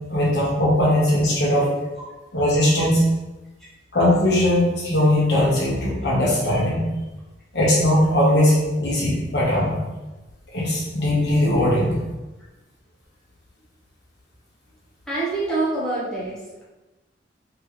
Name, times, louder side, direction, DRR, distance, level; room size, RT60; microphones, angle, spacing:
voice 1, 0.1-1.7 2.3-3.0 3.9-6.9 7.5-9.8 10.5-11.9, left 1 dB, 70° left, -5 dB, 1.4 m, -19 dB
voice 2, 15.1-16.6, right 2 dB, 5° left, -9 dB, 1.0 m, -26 dB
3.6 x 3.3 x 3.2 m, 1.1 s
head